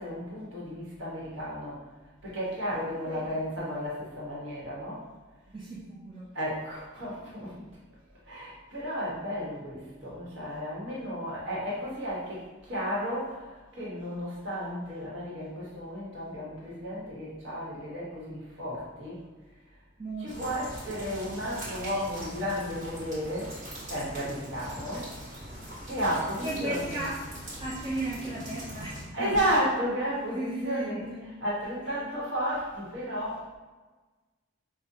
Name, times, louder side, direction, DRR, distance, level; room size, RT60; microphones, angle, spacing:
voice 1, 0.0-1.8 2.2-5.0 6.3-7.7 8.2-19.2 20.2-23.5 23.9-25.1 25.5-27.0 29.1-33.5, equal, 65° right, -6 dB, 1.3 m, -33 dB
voice 2, 3.0-3.4 5.5-6.3 20.0-20.7 21.1-21.2 26.4-27.2 27.6-29.5 30.1-31.2 31.8-32.1, right 1 dB, 25° right, -6 dB, 0.4 m, -36 dB
sound 1, 20.3-29.0, equal, 40° right, 1.4 m, -42 dB
5.0 x 2.1 x 2.7 m, 1.3 s
head